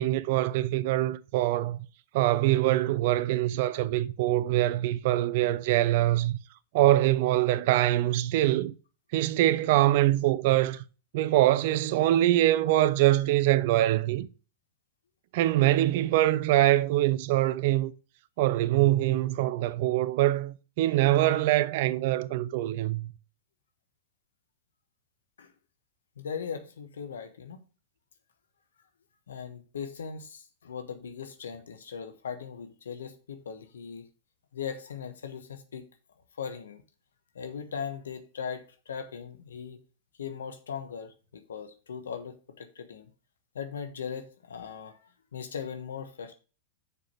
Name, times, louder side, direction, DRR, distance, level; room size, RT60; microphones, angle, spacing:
voice 1, 0.0-1.8 2.1-6.4 6.7-8.7 9.1-10.8 11.1-14.3 15.3-17.9 18.4-23.1, right 15 dB, 60° right, 0.6 m, -24 dB
voice 2, 26.2-27.6 29.3-34.1 34.5-35.9 36.4-36.8 37.3-39.8 40.2-43.1 43.5-46.3, left 7 dB, 80° left, 1.1 m, -39 dB
6.7 x 5.0 x 5.9 m
hypercardioid pair, 105°, 0 cm